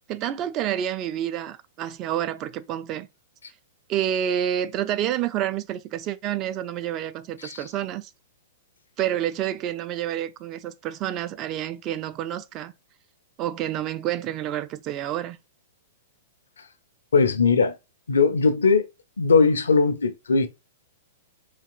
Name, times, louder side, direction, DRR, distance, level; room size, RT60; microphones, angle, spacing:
voice 1, 0.1-3.1 3.9-8.1 9.0-12.7 13.4-15.4, right 11 dB, 30° right, 0.3 m, -28 dB
voice 2, 17.1-17.8 18.1-18.9 19.2-20.5, left 4 dB, 70° left, 0.5 m, -19 dB
4.0 x 2.9 x 2.3 m
figure-of-eight pair, 105°, 0 cm